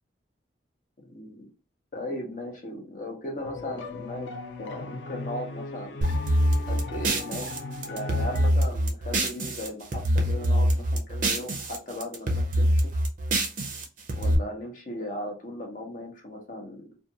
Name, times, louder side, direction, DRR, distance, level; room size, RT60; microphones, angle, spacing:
voice 1, 1.1-1.5 1.9-4.3 4.6-6.0 6.7-7.5 7.8-12.8 14.2-16.9, left 1 dB, 40° left, 2 dB, 0.7 m, -37 dB
sound 1, 3.4-8.5, left 3 dB, 65° left, 0.4 m, -37 dB
sound 2, 6.0-9.7 9.9-11.8 12.0-14.3, right 1 dB, 40° right, 0.5 m, -25 dB
2.4 x 2.3 x 2.7 m, 0.31 s
head